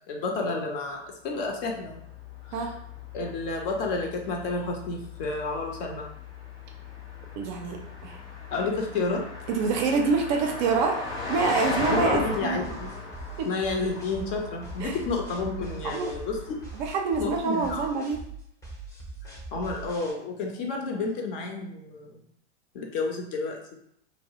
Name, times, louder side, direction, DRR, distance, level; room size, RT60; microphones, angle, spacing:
voice 1, 0.1-2.1 2.4-2.7 3.1-6.1 8.5-9.2 11.9-13.0 13.4-16.4 17.2-17.9 19.2-22.2 22.7-23.6, left 3 dB, 50° left, 1 dB, 0.7 m, -30 dB
Car passing by, 1.4-17.2, left 3 dB, 70° left, 1.1 m, -38 dB
voice 2, 7.4-8.2 9.5-11.0 11.3-12.6 13.4-13.5 14.8-15.0 15.8-16.1 16.8-18.2, right 4 dB, 40° right, 3 dB, 0.4 m, -26 dB
sound 1, 12.1-20.1, right 3 dB, 10° left, 0.5 m, -42 dB
2.3 x 2.0 x 2.7 m, 0.71 s
hypercardioid pair, 100°, 35 cm